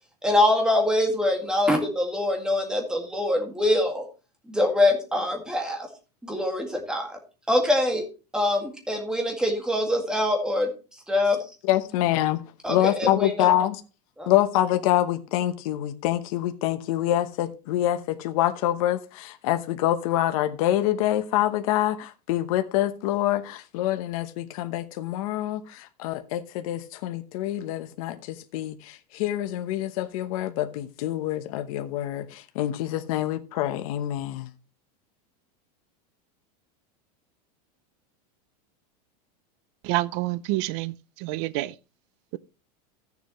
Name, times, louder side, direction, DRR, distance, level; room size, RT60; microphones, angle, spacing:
voice 1, 0.2-4.0 4.5-5.9 6.2-7.1 7.5-8.0 8.3-10.7 11.1-11.4 12.6-13.5 14.2-14.3, left 1 dB, 5° right, 2.1 m, -24 dB
voice 2, 11.6-12.4 12.7-13.8 14.3-34.5, left 13 dB, 60° left, 1.0 m, -26 dB
voice 3, 39.8-41.7, right 18 dB, 45° right, 0.5 m, -28 dB
14.5 x 7.1 x 3.1 m
supercardioid pair, 160°, 20 cm